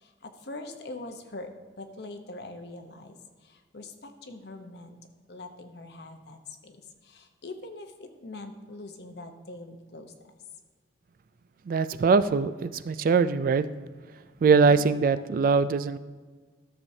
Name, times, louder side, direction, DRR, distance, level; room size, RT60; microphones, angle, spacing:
voice 1, 0.0-1.5 1.8-3.2 3.4-5.0 5.3-6.8 7.0-10.1, left 2 dB, 65° left, 0.8 m, -43 dB
voice 2, 11.7-13.7 14.4-16.0, right 5 dB, 50° right, 0.3 m, -22 dB
13.5 x 7.1 x 2.7 m
head